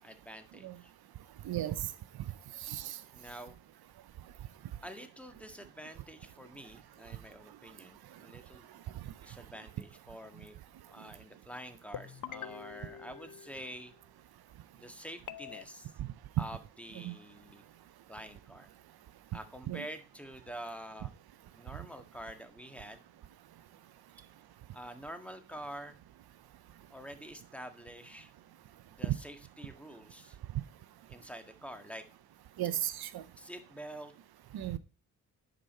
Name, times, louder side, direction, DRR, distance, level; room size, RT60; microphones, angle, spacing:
voice 1, 0.0-0.9 2.5-2.7 3.1-3.6 4.8-10.5 10.9-13.9 14.7-16.0 16.4-17.6 18.1-18.7 19.3-21.1 21.6-23.0 24.7-26.0 26.9-28.3 28.9-30.4 31.1-32.1 33.4-34.1, equal, 5° left, 1.6 m, -47 dB
voice 2, 1.4-1.9 2.7-3.0 17.0-17.1 19.7-19.8 32.6-33.2 34.5-34.8, right 13 dB, 75° right, 0.7 m, -35 dB
sound 1, 11.9-14.1 15.3-15.6, left 9 dB, 55° left, 0.7 m, -46 dB
9.8 x 5.1 x 4.2 m
cardioid pair, 55°, 38 cm